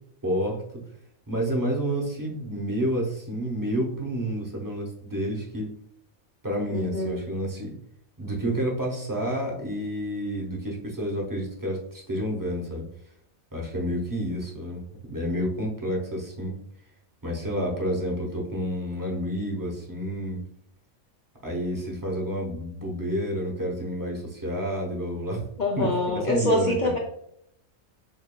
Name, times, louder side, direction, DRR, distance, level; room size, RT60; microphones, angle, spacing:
voice 1, 0.2-0.6 1.3-5.7 6.4-7.8 8.2-12.9 13.5-14.8 15.1-16.5 17.2-20.4 21.4-25.5 25.8-25.9 26.3-26.9, equal, 20° right, -2 dB, 0.5 m, -29 dB
voice 2, 6.7-7.1 25.6-27.0, left 1 dB, 80° left, -1 dB, 0.4 m, -25 dB
6.5 x 2.3 x 2.2 m, 0.72 s
omnidirectional pair, 1.4 m